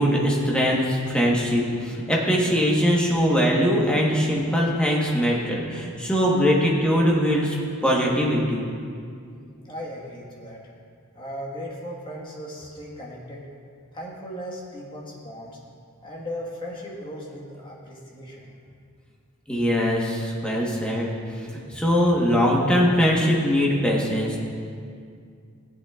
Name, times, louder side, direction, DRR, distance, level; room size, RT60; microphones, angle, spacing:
voice 1, 0.0-7.6 7.8-8.6 19.5-21.1 21.5-24.4, equal, 5° left, -3 dB, 1.3 m, -21 dB
voice 2, 9.6-10.6 11.1-13.4 13.9-15.6 16.0-18.5, equal, 20° left, -4 dB, 1.6 m, -37 dB
16.5 x 8.2 x 2.5 m, 2.3 s
head